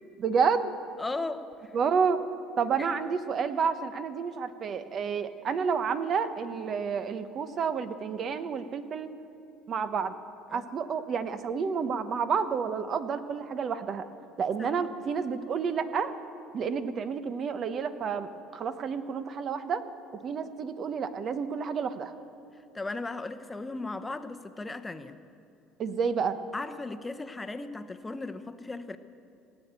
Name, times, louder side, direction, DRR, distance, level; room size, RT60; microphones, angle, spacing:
voice 1, 0.2-0.7 1.7-2.2 2.6-9.1 9.7-10.1 10.5-14.0 14.4-16.1 16.5-19.8 20.2-22.1 25.8-26.4, right 6 dB, 45° right, 11 dB, 1.0 m, -30 dB
voice 2, 1.0-1.7 2.8-2.9 10.5-10.6 14.6-14.8 22.7-25.2 26.5-29.0, left 3 dB, 15° left, 10 dB, 0.9 m, -36 dB
17.5 x 9.1 x 8.2 m, 2.6 s
supercardioid pair, 90°, 0 cm